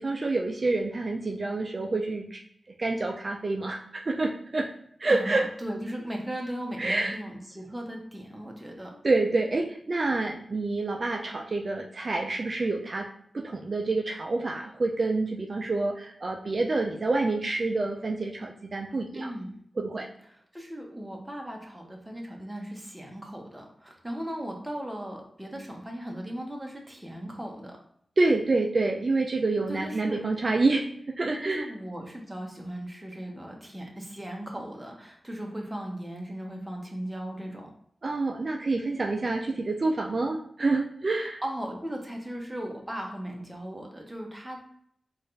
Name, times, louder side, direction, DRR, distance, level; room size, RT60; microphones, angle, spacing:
voice 1, 0.0-2.4 2.8-4.7 5.0-5.4 6.8-7.2 9.0-13.1 13.3-19.3 19.8-20.1 28.2-30.9 31.2-31.6 38.0-41.4, right 3 dB, 50° right, 2 dB, 0.4 m, -27 dB
voice 2, 5.1-9.0 19.1-19.6 20.2-27.8 29.7-30.2 31.3-37.7 41.1-44.6, equal, 10° right, 0 dB, 1.1 m, -37 dB
4.1 x 2.5 x 3.2 m, 0.68 s
cardioid pair, 50°, 0 cm